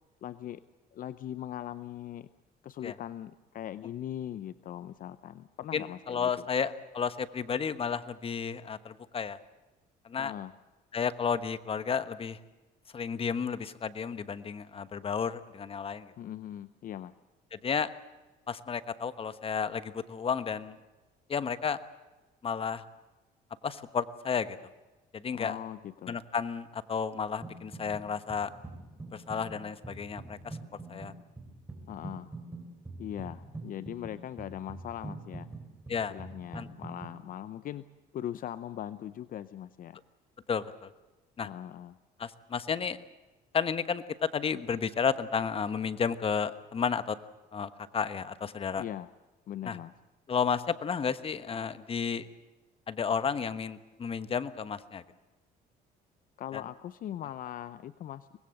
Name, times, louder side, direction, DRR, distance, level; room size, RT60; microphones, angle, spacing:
voice 1, 0.2-0.6 0.9-2.3 2.6-6.5 10.2-10.5 16.2-17.1 25.3-26.2 31.9-32.3 33.0-35.5 36.1-37.8 38.1-40.0 41.4-42.0 48.7-49.1 49.5-49.9 56.4-58.4, left 11 dB, 55° left, 14 dB, 0.7 m, -40 dB
voice 2, 5.7-9.4 10.0-10.3 10.9-12.4 12.9-16.1 17.5-17.9 18.5-20.8 21.3-21.8 22.4-22.8 23.6-24.6 25.1-25.6 26.1-28.5 29.1-30.6 30.9-31.1 35.9-36.1 36.5-36.7 40.5-40.9 41.4-41.5 42.2-43.0 43.5-47.2 47.5-48.8 49.6-49.8 50.3-52.3 52.9-55.0 56.5-56.6, left 6 dB, 35° left, 13 dB, 1.2 m, -32 dB
sound 1, 27.4-28.0 28.3-37.2, right 2 dB, 15° right, 4.8 m, -44 dB
24.0 x 20.0 x 7.8 m, 1.2 s
cardioid pair, 110°, 17 cm